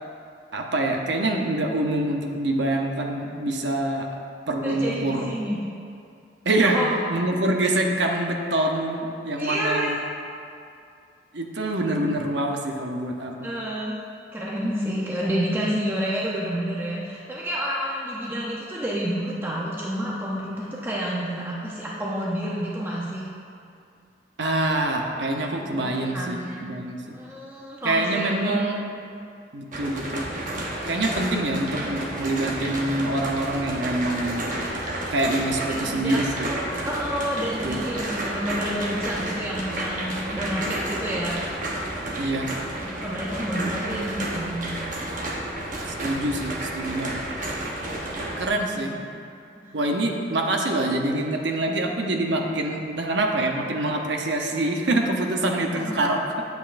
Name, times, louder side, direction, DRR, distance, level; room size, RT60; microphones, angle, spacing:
voice 1, 0.5-4.1 4.5-5.3 6.4-6.8 7.1-10.0 11.3-13.5 24.4-27.2 27.8-28.8 29.5-30.3 30.8-34.6 35.1-36.6 37.6-37.8 42.2-42.5 46.0-47.3 48.4-49.0 49.7-56.4, right 1 dB, 75° right, 2 dB, 0.8 m, -25 dB
voice 2, 4.6-5.6 6.6-7.0 9.4-9.9 13.4-14.0 14.3-23.2 25.6-26.7 27.0-28.6 35.6-41.4 42.8-44.6 48.5-49.0 55.7-55.9, equal, 10° right, -6 dB, 0.6 m, -29 dB
sound 1, 29.7-48.5, right 1 dB, 45° right, 1.0 m, -31 dB
8.7 x 8.0 x 2.6 m, 2.5 s
head